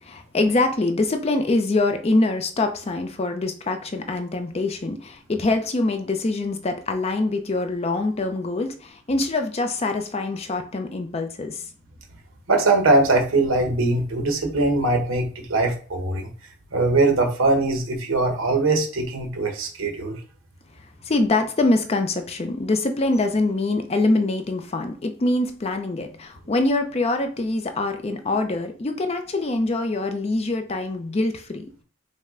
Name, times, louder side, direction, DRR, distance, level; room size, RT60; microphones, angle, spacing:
voice 1, 0.0-11.6 21.0-31.6, left 2 dB, 30° left, 6 dB, 0.5 m, -24 dB
voice 2, 12.5-16.3 16.7-20.2, right 2 dB, 80° right, 3 dB, 1.0 m, -21 dB
5.3 x 2.1 x 3.7 m, 0.40 s
head